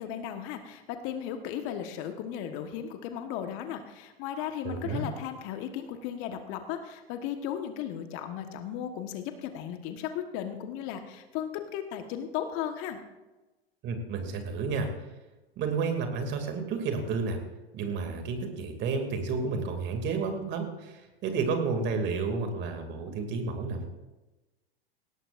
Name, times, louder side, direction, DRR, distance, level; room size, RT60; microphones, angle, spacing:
voice 1, 0.0-13.0, left 9 dB, 45° left, 7 dB, 1.4 m, -36 dB
voice 2, 4.6-5.1 13.8-14.9 15.6-17.4 17.7-23.9, right 4 dB, 35° right, 5 dB, 2.6 m, -31 dB
18.5 x 17.5 x 2.6 m, 1.1 s
hypercardioid pair, 100°, 31 cm